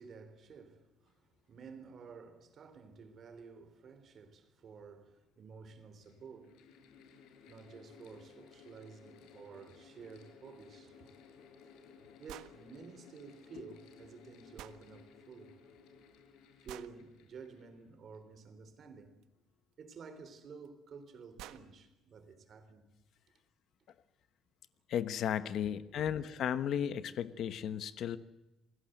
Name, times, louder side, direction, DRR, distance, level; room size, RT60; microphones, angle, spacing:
voice 1, 0.0-6.6 7.5-11.1 12.2-15.6 16.6-19.2 19.8-22.9 25.9-26.1, right 5 dB, 35° right, 3.5 m, -52 dB
Mechanical fan, 4.7-4.8 5.7-18.3, left 5 dB, 90° left, 5.7 m, -59 dB
sound 1, 12.3-12.6 14.6-14.8 16.7-17.0 19.2-19.3 20.6-20.7 21.1-21.2 21.4-21.7, right 13 dB, 80° right, 1.4 m, -49 dB
voice 2, 24.9-28.2, left 9 dB, 50° left, 1.1 m, -34 dB
29.5 x 21.0 x 8.0 m
cardioid pair, 175°, 0 cm